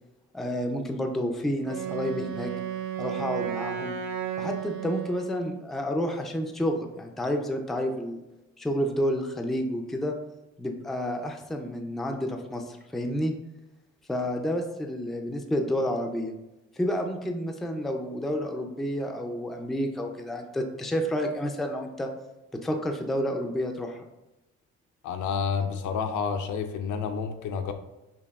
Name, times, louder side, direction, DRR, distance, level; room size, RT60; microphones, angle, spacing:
voice 1, 0.3-2.5 3.0-3.9 4.4-8.2 8.6-10.1 10.6-13.3 14.1-16.3 16.8-22.1 22.6-24.1, equal, ahead, 4 dB, 0.3 m, -30 dB
Wind instrument woodwind instrument, 1.6-5.6, right 9 dB, 75° right, 0.6 m, -33 dB
voice 2, 25.0-27.7, left 6 dB, 75° left, 7 dB, 0.5 m, -29 dB
5.1 x 2.6 x 2.3 m, 0.99 s
cardioid pair, 90°, 30 cm